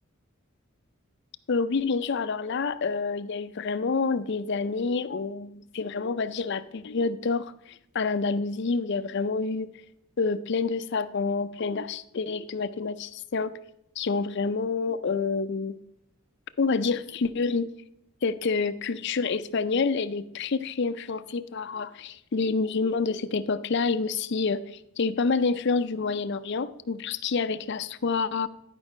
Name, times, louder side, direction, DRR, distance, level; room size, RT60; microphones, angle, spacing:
voice 1, 1.5-9.7 10.2-13.5 14.0-15.8 16.6-17.7 18.2-24.6 25.0-28.5, left 4 dB, 50° left, 12 dB, 0.4 m, -28 dB
11.0 x 5.3 x 5.0 m, 0.78 s
head